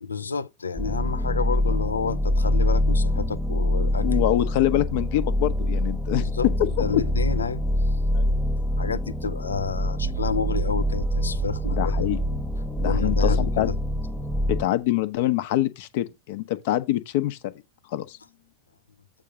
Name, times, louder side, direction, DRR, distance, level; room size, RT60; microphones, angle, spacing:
voice 1, 0.0-4.2 6.2-6.5 6.8-7.6 8.8-12.1 12.8-13.8, left 5 dB, 75° left, 0.4 m, -29 dB
sound 1, 0.8-14.7, left 1 dB, ahead, 1.0 m, -25 dB
voice 2, 4.0-6.2 6.6-6.7 6.9-7.0 8.1-8.3 11.7-12.2 12.8-13.7 14.5-17.4 17.9-18.2, left 14 dB, 50° left, 0.8 m, -25 dB
sound 2, 10.0-14.2, right 12 dB, 35° right, 0.5 m, -33 dB
8.4 x 3.8 x 5.2 m
figure-of-eight pair, 90°, 0 cm